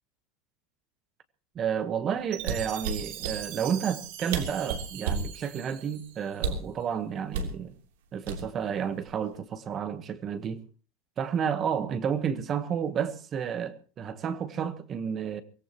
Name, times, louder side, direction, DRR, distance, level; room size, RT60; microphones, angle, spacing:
voice 1, 1.5-7.7 8.1-10.6 11.2-15.4, right 8 dB, 20° right, 1.1 m, -31 dB
Chime, 2.3-6.6, right 11 dB, 50° right, 3.8 m, -41 dB
sound 1, 2.4-3.4 4.0-4.1 4.3-5.3 6.4-6.7 7.3-7.6 8.3-8.7 9.1-9.4, right 5 dB, 80° right, 3.1 m, -31 dB
24.0 x 18.0 x 3.0 m
supercardioid pair, 180°, 0 cm